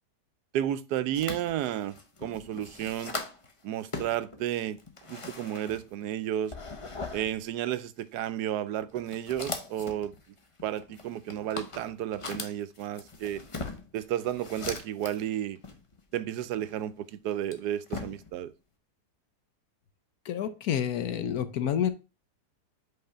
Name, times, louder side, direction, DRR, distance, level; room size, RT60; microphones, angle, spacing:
voice 1, 0.5-2.0 2.2-3.2 3.6-4.8 5.1-6.5 7.1-10.1 10.6-13.4 13.9-15.6 16.1-18.5, right 11 dB, 80° right, 1.2 m, -32 dB
sound 1, 1.1-3.5 3.8-6.1 6.4-7.3 8.0-8.2 8.8-15.3 15.6-16.8 17.3-18.4, left 3 dB, 30° left, 0.6 m, -40 dB
voice 2, 20.2-21.9, left 9 dB, 70° left, 1.2 m, -29 dB
5.5 x 4.0 x 5.6 m
omnidirectional pair, 1.7 m